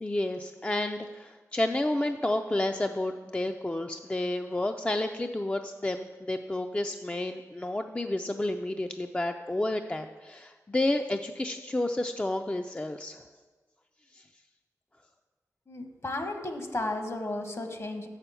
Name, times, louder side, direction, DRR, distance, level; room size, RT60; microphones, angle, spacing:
voice 1, 0.0-13.2 14.1-14.2, left 1 dB, 20° left, 5 dB, 0.4 m, -30 dB
voice 2, 15.7-18.1, left 2 dB, 50° left, 5 dB, 1.1 m, -34 dB
6.7 x 5.7 x 6.8 m, 1.4 s
cardioid pair, 60°, 6 cm